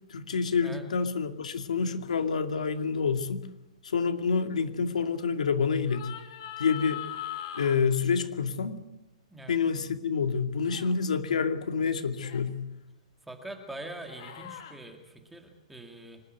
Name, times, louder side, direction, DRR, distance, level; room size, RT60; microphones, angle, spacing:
voice 1, 0.1-3.5 3.8-6.1 6.6-7.0 7.5-8.8 9.5-12.6, left 5 dB, 85° left, 8 dB, 2.4 m, -28 dB
sound 1, 2.0-2.3 5.8-7.8 10.6-11.0 12.2-12.4 14.0-14.7, left 11 dB, 45° left, 2.8 m, -40 dB
voice 2, 13.3-16.2, right 1 dB, 5° right, 4 dB, 1.9 m, -43 dB
25.0 x 12.0 x 9.3 m, 0.99 s
hypercardioid pair, 170°, 4 cm